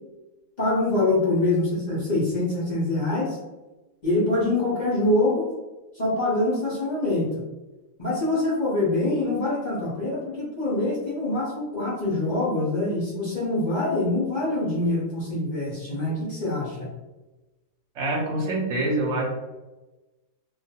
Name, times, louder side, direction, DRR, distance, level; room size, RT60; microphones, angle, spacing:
voice 1, 0.6-3.4 4.0-5.5 5.9-7.4 8.0-16.9, left 2 dB, 50° left, -7 dB, 0.5 m, -25 dB
voice 2, 17.9-19.3, right 2 dB, 60° right, -1 dB, 0.9 m, -25 dB
2.5 x 2.3 x 2.7 m, 1.1 s
omnidirectional pair, 1.7 m